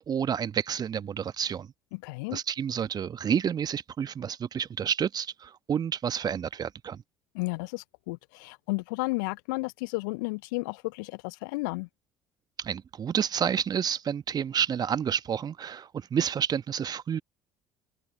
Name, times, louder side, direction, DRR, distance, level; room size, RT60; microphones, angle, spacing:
voice 1, 0.0-1.7 2.3-7.0 12.6-17.2, right 8 dB, 35° right, 1.2 m, -29 dB
voice 2, 1.9-2.4 7.3-11.9, left 27 dB, 65° left, 0.4 m, -33 dB
open air
figure-of-eight pair, 60°, 11 cm